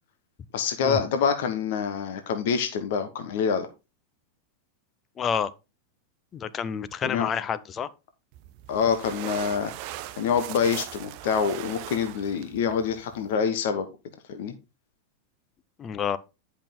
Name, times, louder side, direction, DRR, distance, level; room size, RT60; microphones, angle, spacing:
voice 1, 0.5-3.7 7.0-7.3 8.7-9.7 10.2-13.9 14.3-14.5, left 6 dB, 55° left, 1.2 m, -26 dB
voice 2, 5.2-5.5 6.3-7.9 15.8-16.2, left 7 dB, 25° left, 0.8 m, -29 dB
sound 1, 8.3-13.3, right 14 dB, 45° right, 0.7 m, -39 dB
10.5 x 5.8 x 3.8 m
figure-of-eight pair, 90°, 0 cm